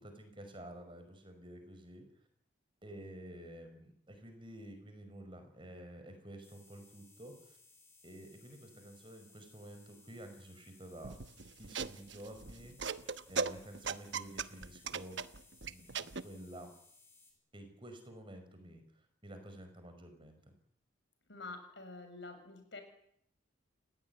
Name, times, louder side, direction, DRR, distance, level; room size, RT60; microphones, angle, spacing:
voice 1, 0.0-2.0 2.8-7.6 8.0-11.2 11.6-13.0 13.3-15.2 15.7-16.7 17.5-18.8 19.2-20.4, right 1 dB, 25° right, 7 dB, 5.6 m, -51 dB
sound 1, 6.4-17.3, left 3 dB, 10° left, 7.0 m, -63 dB
sound 2, 11.0-16.2, right 5 dB, 60° right, 1.0 m, -39 dB
voice 2, 21.3-22.8, left 3 dB, 60° left, 7 dB, 6.8 m, -47 dB
30.0 x 17.0 x 9.7 m, 0.68 s
head